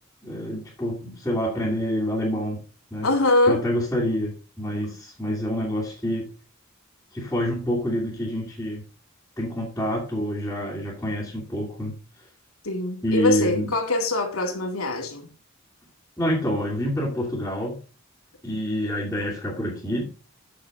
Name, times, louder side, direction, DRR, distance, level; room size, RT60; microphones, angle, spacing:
voice 1, 0.2-2.6 2.9-3.1 3.5-6.3 7.1-8.8 9.4-12.0 13.0-13.7 16.2-17.8 18.4-20.1, equal, 10° left, 2.6 m, -27 dB
voice 2, 3.0-3.6 12.6-15.3, left 2 dB, 90° left, 2.3 m, -23 dB
8.5 x 7.0 x 3.7 m
head